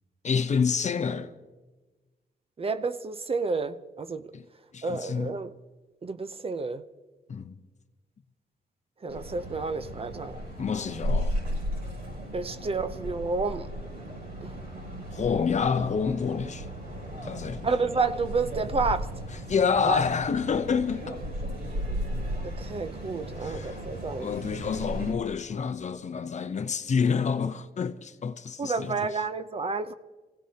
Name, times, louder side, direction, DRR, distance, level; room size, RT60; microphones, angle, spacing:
voice 1, 0.2-1.3 4.3-4.4 4.7-5.4 7.3-7.6 10.6-11.4 15.1-16.7 17.2-17.7 19.5-21.2 23.4-23.8 24.2-29.2, left 6 dB, 45° left, 0.7 m, -28 dB
voice 2, 2.6-4.3 4.8-5.5 6.0-6.8 9.0-10.4 12.3-13.7 14.4-14.6 17.6-19.1 19.8-20.0 22.4-24.3 28.6-29.9, right 4 dB, 35° right, 0.6 m, -30 dB
sound 1, 9.1-25.1, equal, 65° right, 6.8 m, -35 dB
27.0 x 16.5 x 2.8 m
cardioid pair, 110°, 17 cm